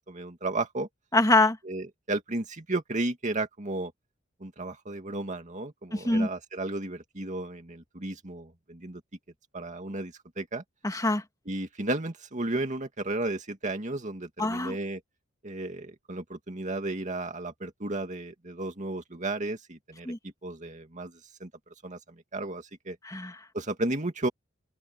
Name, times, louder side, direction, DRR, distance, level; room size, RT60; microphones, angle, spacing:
voice 1, 0.1-0.9 1.6-3.9 4.4-9.0 9.5-10.6 11.5-15.0 15.4-21.5 21.8-23.0 23.5-24.3, right 2 dB, 40° right, 2.2 m, -34 dB
voice 2, 1.1-1.6 5.9-6.3 10.8-11.2 14.4-14.8 20.0-20.2 23.0-23.4, left 2 dB, 20° left, 2.7 m, -24 dB
open air
head